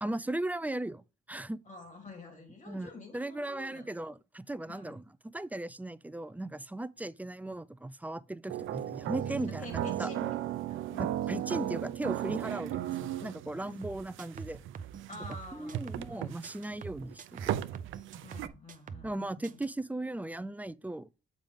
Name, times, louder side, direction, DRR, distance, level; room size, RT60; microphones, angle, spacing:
voice 1, 0.0-1.6 2.7-5.0 5.3-10.1 11.0-14.6 15.5-17.6 19.0-21.1, right 1 dB, 10° right, 0.4 m, -37 dB
voice 2, 1.6-4.0 4.7-5.0 9.6-11.2 15.1-16.5 18.2-19.6, left 3 dB, 40° left, 3.2 m, -49 dB
sound 1, 8.5-18.5, right 12 dB, 80° right, 0.5 m, -36 dB
sound 2, 13.8-16.2 16.4-19.2 19.4-19.7, right 6 dB, 40° right, 0.7 m, -45 dB
7.3 x 5.2 x 3.6 m
cardioid pair, 90°, 20 cm